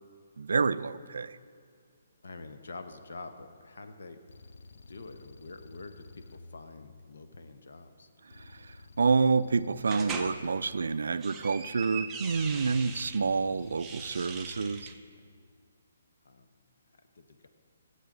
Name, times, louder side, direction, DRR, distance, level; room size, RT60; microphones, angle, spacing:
voice 1, 0.4-1.4 8.3-14.9, right 4 dB, 80° right, 16 dB, 0.3 m, -28 dB
voice 2, 2.2-4.2 4.9-8.1 12.0-12.1 16.2-16.5 17.1-17.5, left 3 dB, 80° left, 8 dB, 0.8 m, -46 dB
sound 1, 3.2-3.5 4.3-7.6 8.3-11.6 12.3-15.2, left 3 dB, 60° left, 0.5 m, -52 dB
sound 2, 9.9-10.3 11.0-13.2 13.7-14.9, right 5 dB, 10° right, 0.5 m, -40 dB
13.5 x 7.9 x 3.8 m, 2.2 s
hypercardioid pair, 170°, 0 cm